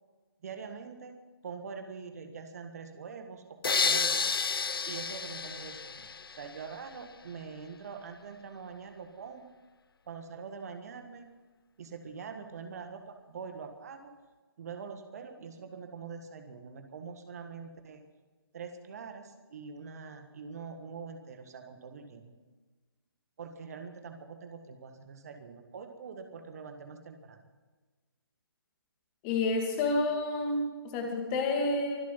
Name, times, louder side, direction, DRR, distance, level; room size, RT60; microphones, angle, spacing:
voice 1, 0.4-1.2 1.4-4.2 4.8-9.5 10.1-11.3 11.8-14.1 14.6-18.0 18.5-22.3 23.4-27.4, right 5 dB, 40° right, 6 dB, 1.6 m, -44 dB
sound 1, 3.6-6.6, left 5 dB, 65° left, 0.4 m, -31 dB
voice 2, 29.2-32.0, left 2 dB, 20° left, 3 dB, 2.4 m, -29 dB
24.0 x 8.3 x 5.6 m, 1.3 s
figure-of-eight pair, 140°, 13 cm